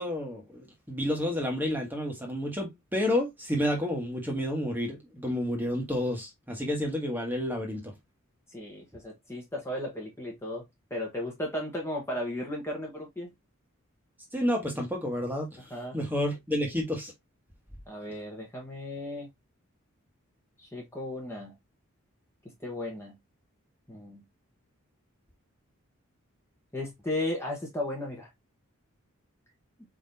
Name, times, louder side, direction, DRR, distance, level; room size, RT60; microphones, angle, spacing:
voice 1, 0.0-7.8 14.3-15.5 15.9-17.1, left 1 dB, 10° right, 1.3 m, -30 dB
voice 2, 8.5-10.6 10.9-13.3 15.7-16.0 17.9-19.3 20.6-21.5 22.6-23.1 23.9-24.2 26.7-28.3, left 1 dB, 10° left, 1.1 m, -35 dB
4.7 x 3.8 x 2.7 m
head